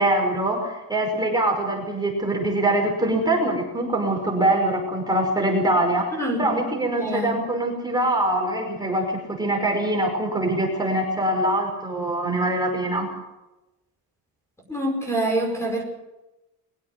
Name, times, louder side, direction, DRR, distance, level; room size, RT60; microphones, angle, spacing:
voice 1, 0.0-13.1, right 1 dB, 10° right, 1 dB, 5.4 m, -23 dB
voice 2, 6.1-6.5 7.0-7.4 14.7-15.8, right 1 dB, 5° left, 1 dB, 5.2 m, -25 dB
22.5 x 16.5 x 7.6 m, 0.98 s
cardioid pair, 175°, 37 cm